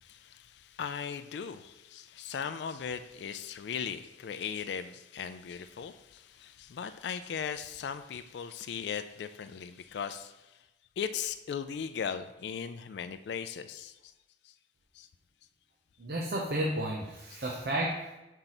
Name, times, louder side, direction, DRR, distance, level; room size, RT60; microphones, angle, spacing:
voice 1, 0.0-10.6 11.0-14.1 14.4-14.5 14.9-15.1 17.3-17.4, left 7 dB, 70° left, 10 dB, 0.3 m, -38 dB
voice 2, 16.0-18.2, right 1 dB, 60° right, -2 dB, 0.7 m, -32 dB
5.8 x 4.6 x 3.9 m, 1.0 s
head